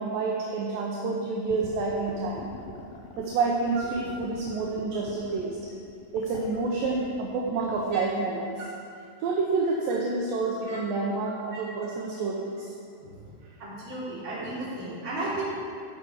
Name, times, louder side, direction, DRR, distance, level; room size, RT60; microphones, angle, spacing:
voice 1, 0.0-2.5 3.2-5.6 6.1-8.5 9.2-12.7, right 3 dB, 75° right, -2 dB, 2.4 m, -28 dB
sound 1, 1.5-8.0, left 4 dB, 75° left, 2.1 m, -44 dB
voice 2, 13.6-15.4, right 2 dB, 35° right, -9 dB, 3.4 m, -34 dB
14.0 x 5.7 x 5.0 m, 2.4 s
omnidirectional pair, 4.5 m